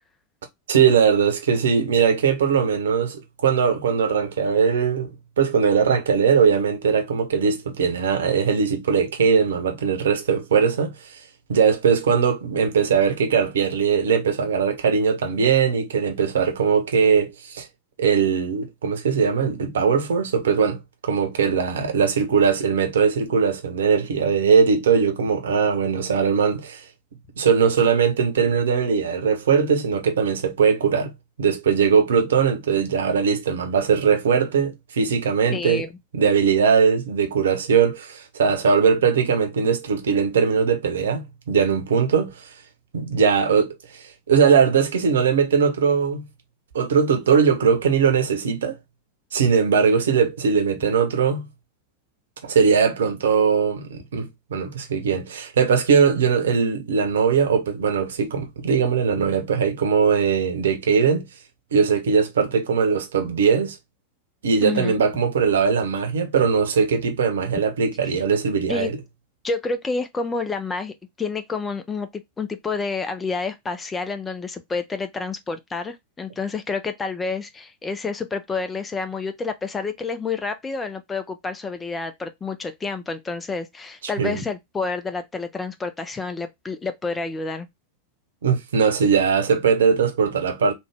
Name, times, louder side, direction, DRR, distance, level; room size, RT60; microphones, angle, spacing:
voice 1, 0.7-5.1 5.4-11.2 11.5-17.7 18.0-26.8 27.4-31.1 31.4-35.9 36.1-42.4 42.9-43.7 44.3-46.3 46.7-48.8 49.3-51.5 52.4-61.3 61.7-63.8 64.4-68.9 84.2-84.4 88.4-90.7, right 6 dB, 65° right, 0.9 m, -20 dB
voice 2, 35.5-35.9 64.6-65.0 68.7-68.9 69.4-87.7, left 4 dB, 15° left, 0.5 m, -29 dB
3.4 x 2.2 x 3.4 m
figure-of-eight pair, 90°, 0 cm